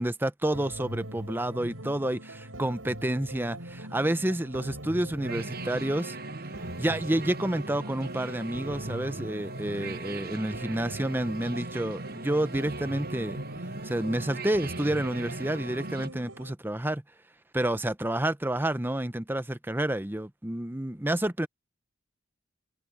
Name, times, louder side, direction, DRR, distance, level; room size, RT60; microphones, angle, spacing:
voice 1, 0.0-6.2 6.8-13.4 13.8-17.0 17.5-21.5, right 1 dB, 10° right, 0.7 m, -29 dB
sound 1, 0.5-16.5, right 1 dB, 75° right, 5.5 m, -42 dB
sound 2, 5.2-16.1, right 3 dB, 45° right, 1.1 m, -40 dB
open air
head